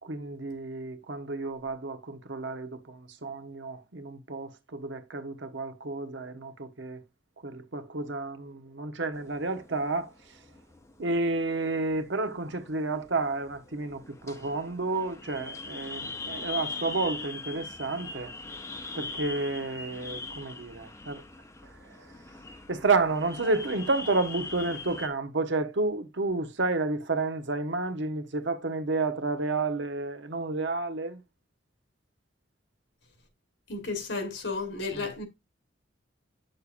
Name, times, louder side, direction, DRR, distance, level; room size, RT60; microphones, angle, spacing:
voice 1, 0.0-7.0 7.4-10.1 11.0-18.3 18.9-21.2 21.6-22.1 22.7-31.2 34.9-35.1, right 3 dB, 70° right, 1.0 m, -31 dB
sound 1, 9.1-25.1, left 3 dB, 15° left, 0.7 m, -42 dB
voice 2, 33.7-35.2, left 3 dB, 75° left, 1.4 m, -33 dB
8.3 x 6.5 x 2.5 m
head